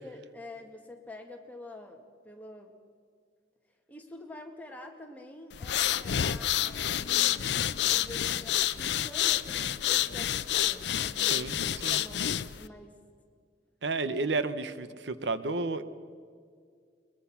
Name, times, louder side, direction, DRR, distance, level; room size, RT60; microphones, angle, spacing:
voice 1, 0.0-2.7 3.9-7.3 7.8-13.0, left 1 dB, 10° left, 2 dB, 1.9 m, -47 dB
sound 1, 5.5-12.7, left 11 dB, 70° left, 0.5 m, -28 dB
voice 2, 11.2-11.6 11.8-12.0 13.8-15.8, right 3 dB, 80° right, 13 dB, 0.9 m, -31 dB
22.0 x 21.5 x 5.9 m, 2.1 s
head